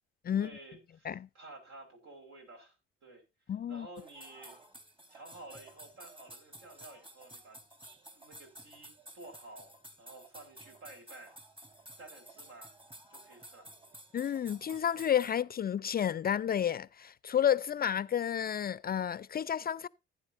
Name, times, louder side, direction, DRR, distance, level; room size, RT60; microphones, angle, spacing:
voice 1, 0.3-2.8 3.0-3.2 3.7-4.6 5.1-7.6 8.1-11.4 12.0-12.7 13.1-13.7, right 2 dB, 65° right, 5.1 m, -52 dB
voice 2, 3.5-3.9 14.1-19.9, left 9 dB, 30° left, 0.4 m, -31 dB
sound 1, 4.0-15.3, right 1 dB, 20° right, 3.1 m, -53 dB
15.5 x 9.5 x 2.6 m
hypercardioid pair, 50°, 29 cm